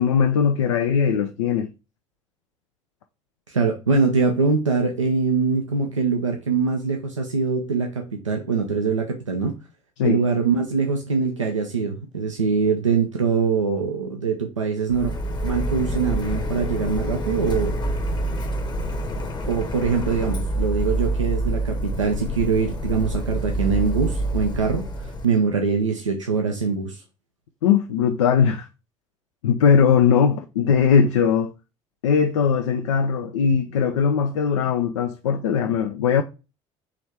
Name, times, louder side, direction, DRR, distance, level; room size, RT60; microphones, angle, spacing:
voice 1, 0.0-1.7 10.0-10.2 27.6-28.7 29.4-31.5 32.0-36.2, left 7 dB, 75° left, 0.4 m, -20 dB
voice 2, 3.5-9.6 10.0-15.1 15.4-17.8 19.5-27.0, right 5 dB, 90° right, 0.5 m, -23 dB
Printer, 14.9-25.3, right 1 dB, 30° left, 0.9 m, -27 dB
4.7 x 3.1 x 3.3 m
figure-of-eight pair, 55°, 16 cm